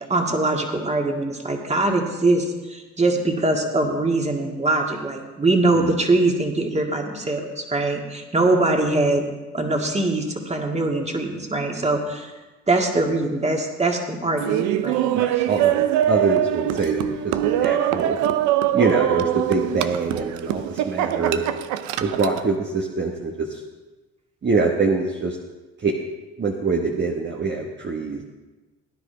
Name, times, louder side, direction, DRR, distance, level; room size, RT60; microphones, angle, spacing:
voice 1, 0.0-9.2 9.5-12.3 12.7-15.1, right 2 dB, 20° right, 2 dB, 2.1 m, -22 dB
Laughter, 14.4-22.5, right 12 dB, 80° right, 0.6 m, -23 dB
voice 2, 15.1-18.2 18.7-21.4 22.0-23.6 24.4-25.4 25.8-26.0 26.4-28.2, right 4 dB, 40° right, 0 dB, 1.4 m, -24 dB
18.0 x 10.0 x 3.4 m, 1.2 s
supercardioid pair, 70°, 29 cm